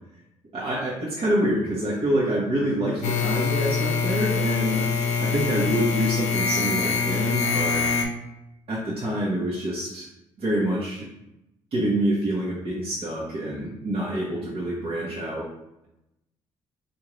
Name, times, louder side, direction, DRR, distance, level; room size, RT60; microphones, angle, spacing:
voice 1, 0.5-4.8 5.2-7.9 8.7-10.1 10.4-11.1 11.7-15.5, right 1 dB, 55° right, -6 dB, 1.0 m, -26 dB
sound 1, 3.0-8.1, left 5 dB, 85° left, 0.5 m, -24 dB
3.7 x 2.5 x 3.1 m, 0.89 s
supercardioid pair, 65°, 12 cm